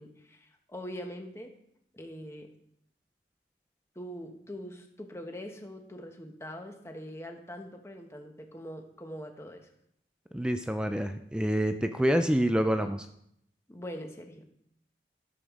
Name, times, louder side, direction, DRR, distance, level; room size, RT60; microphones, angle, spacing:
voice 1, 0.0-1.5 1.9-2.5 3.9-9.7 13.7-14.5, equal, 15° left, 4 dB, 1.0 m, -43 dB
voice 2, 10.3-13.1, equal, 5° right, 8 dB, 0.4 m, -27 dB
13.5 x 7.0 x 3.6 m, 0.74 s
head